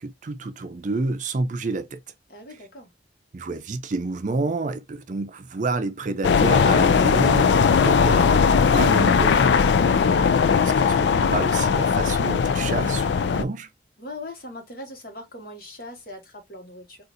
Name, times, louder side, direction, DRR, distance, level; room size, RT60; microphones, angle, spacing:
voice 1, 0.0-2.0 3.3-9.5 10.6-13.7, right 3 dB, 45° right, 0.5 m, -29 dB
voice 2, 2.3-2.9 14.0-17.0, left 1 dB, 55° left, 1.4 m, -40 dB
sound 1, 6.2-13.4, left 6 dB, 80° left, 0.4 m, -19 dB
3.8 x 2.5 x 2.6 m
head